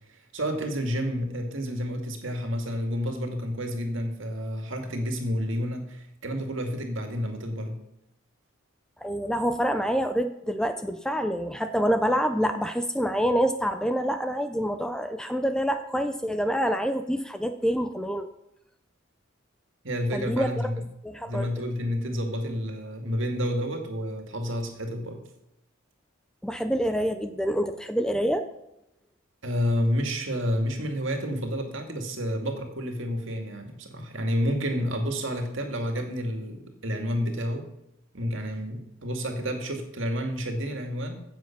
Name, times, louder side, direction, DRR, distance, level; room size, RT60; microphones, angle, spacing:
voice 1, 0.1-7.8 19.8-20.8 21.3-25.2 29.4-37.6 38.1-41.1, equal, 60° right, 4 dB, 2.3 m, -30 dB
voice 2, 9.0-18.3 20.1-20.5 21.0-21.5 26.4-28.5, equal, 5° left, 8 dB, 0.5 m, -26 dB
16.0 x 7.5 x 6.0 m, 0.86 s
head